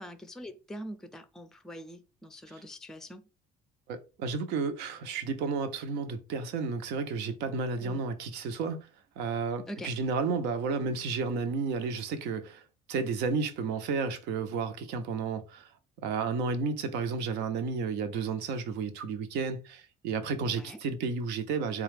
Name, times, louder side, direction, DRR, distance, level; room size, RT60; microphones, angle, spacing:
voice 1, 0.0-3.2 7.8-8.0 9.7-9.9 20.5-20.8, equal, 5° left, 0.4 m, -43 dB
voice 2, 3.9-8.9 9.2-12.6 12.9-15.7 16.0-21.8, right 4 dB, 90° right, 0.7 m, -32 dB
4.0 x 2.3 x 3.2 m
cardioid pair, 110°, 17 cm